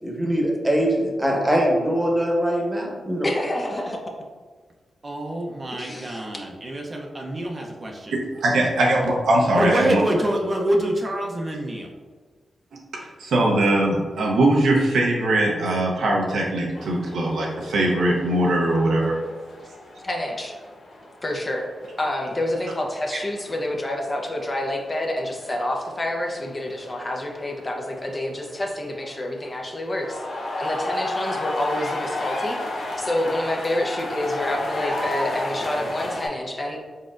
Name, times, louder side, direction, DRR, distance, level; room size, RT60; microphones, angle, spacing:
voice 1, 0.0-3.3, equal, 15° right, -1 dB, 1.1 m, -22 dB
voice 2, 3.2-4.0 5.8-6.2 20.0-20.6 21.2-21.6 22.0-30.2 30.6-32.6 33.0-36.8, left 1 dB, 30° left, 0 dB, 0.8 m, -28 dB
voice 3, 5.0-8.2 9.5-11.9, right 1 dB, 40° right, 0 dB, 0.7 m, -26 dB
voice 4, 8.4-10.0 13.2-19.2, right 1 dB, 85° right, -2 dB, 0.8 m, -21 dB
sound 1, 16.7-36.3, left 1 dB, 80° left, 1.0 m, -33 dB
4.1 x 3.7 x 2.5 m, 1.4 s
cardioid pair, 60°, 0 cm